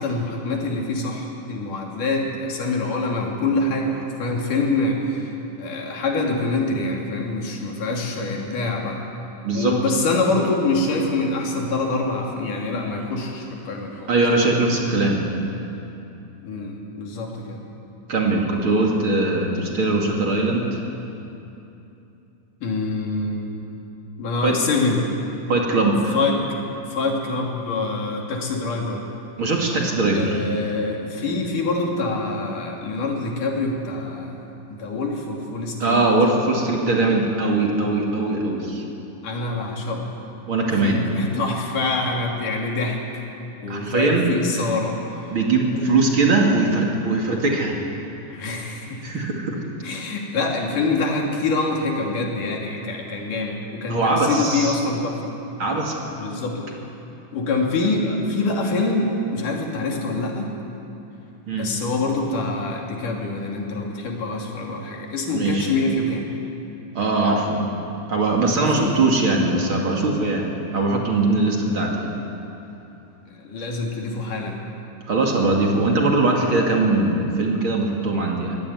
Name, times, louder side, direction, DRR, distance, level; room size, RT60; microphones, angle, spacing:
voice 1, 0.0-5.3 5.6-9.0 9.5-14.1 16.4-17.6 22.6-23.5 24.2-25.1 26.1-26.6 26.9-29.0 30.1-36.0 39.2-40.1 40.8-43.0 43.6-45.4 45.7-45.9 48.3-49.2 49.8-55.3 56.2-56.7 57.3-60.5 61.6-66.3 68.6-69.0 71.7-71.9 73.4-74.6, left 3 dB, 85° left, 0 dB, 4.4 m, -25 dB
voice 2, 9.4-9.8 14.1-15.3 18.1-20.8 24.4-24.6 25.5-26.2 29.4-30.4 35.8-38.8 40.5-41.1 43.7-44.3 45.3-47.8 49.0-49.6 53.9-54.7 55.6-56.1 61.5-61.7 65.3-65.7 66.9-67.6 68.1-70.5 70.7-72.1 75.1-78.6, right 2 dB, 45° right, -1 dB, 3.0 m, -21 dB
23.0 x 16.5 x 9.6 m, 2.8 s
omnidirectional pair, 3.6 m